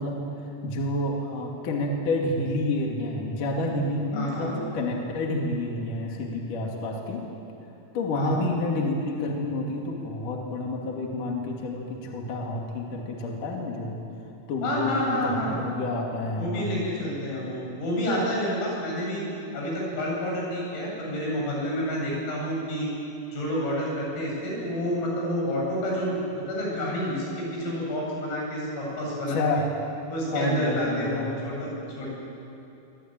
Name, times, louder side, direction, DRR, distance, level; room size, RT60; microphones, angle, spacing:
voice 1, 0.0-7.3 7.9-14.0 14.5-16.8 29.1-29.7 30.3-31.3, left 2 dB, 45° left, 0 dB, 3.5 m, -29 dB
voice 2, 4.1-4.5 8.2-8.3 14.6-15.6 16.4-19.2 19.5-22.9 23.3-26.2 26.5-29.4 30.1-31.7 32.0-32.1, equal, 80° left, -3 dB, 10.5 m, -29 dB
25.0 x 24.5 x 9.1 m, 2.8 s
omnidirectional pair, 5.9 m